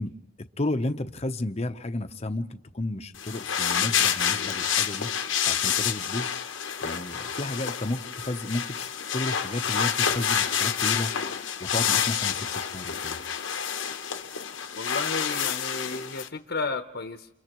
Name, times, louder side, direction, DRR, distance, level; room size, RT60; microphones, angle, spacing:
voice 1, 0.0-5.1 5.5-6.3 6.8-8.9 9.1-11.1 11.6-13.2, left 2 dB, 35° left, 8 dB, 0.9 m, -32 dB
sound 1, 3.1-16.3, left 8 dB, 85° left, 1.1 m, -28 dB
voice 2, 14.8-17.3, left 3 dB, 60° left, 6 dB, 1.0 m, -33 dB
29.5 x 28.5 x 3.1 m, 0.95 s
head